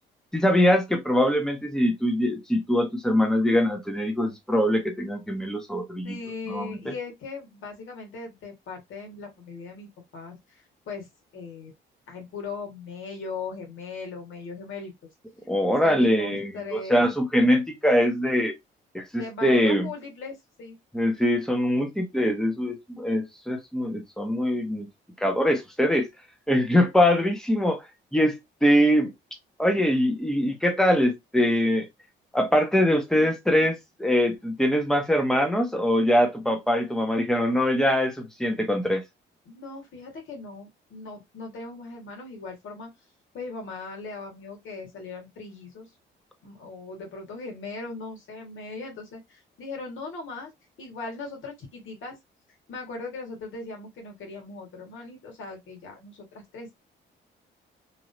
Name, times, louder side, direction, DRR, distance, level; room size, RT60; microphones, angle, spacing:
voice 1, 0.3-6.2 6.5-6.9 15.5-18.5 18.9-19.9 20.9-24.9 25.2-26.1 26.5-27.8 28.1-29.1 29.6-31.9 32.3-39.0, equal, 5° left, 0.9 m, -23 dB
voice 2, 6.0-11.1 11.3-11.7 12.1-14.9 15.8-17.0 19.2-20.8 39.4-42.9 43.3-45.9 46.4-50.5 50.8-52.1 52.7-56.2 56.5-56.7, left 4 dB, 75° left, 1.7 m, -38 dB
3.2 x 2.7 x 2.6 m
cardioid pair, 90°, 20 cm